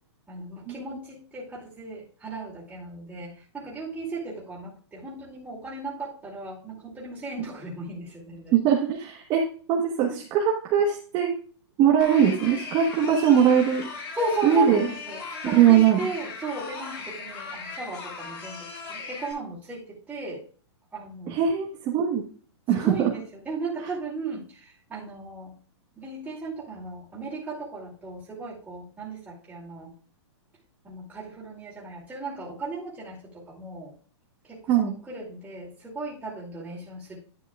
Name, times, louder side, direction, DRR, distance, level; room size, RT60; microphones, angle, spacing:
voice 1, 0.3-8.6 10.1-10.2 14.1-20.4 20.9-21.4 22.7-25.5 26.0-29.9 30.8-33.9 34.4-37.2, right 3 dB, 10° right, -6 dB, 2.6 m, -36 dB
voice 2, 8.5-9.4 9.7-11.3 11.8-13.9 14.4-14.9 15.4-16.1 21.3-22.2 22.7-23.1 34.7-34.9, right 8 dB, 30° right, -1 dB, 1.2 m, -21 dB
sound 1, 12.0-19.3, left 4 dB, 35° left, 4.9 m, -38 dB
10.5 x 8.7 x 2.4 m, 0.42 s
hypercardioid pair, 145°, 15 cm